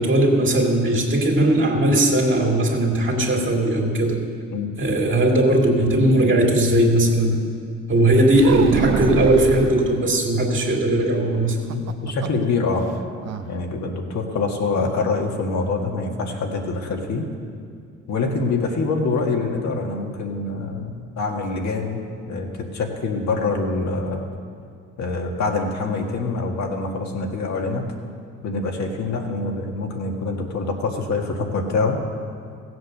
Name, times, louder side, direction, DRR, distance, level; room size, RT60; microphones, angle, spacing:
voice 1, 0.0-4.2 4.8-7.4 7.9-11.6, right 1 dB, 40° right, 0 dB, 2.5 m, -18 dB
sound 1, 8.3-9.8 11.5-12.5 12.8-12.9 13.2-13.5, right 8 dB, 60° right, 0.7 m, -26 dB
voice 2, 11.7-12.9 13.5-17.3 18.1-24.3 25.0-27.9 28.4-32.0, left 3 dB, 65° left, 2 dB, 1.8 m, -25 dB
16.0 x 7.9 x 6.6 m, 2.4 s
cardioid pair, 90°, 30 cm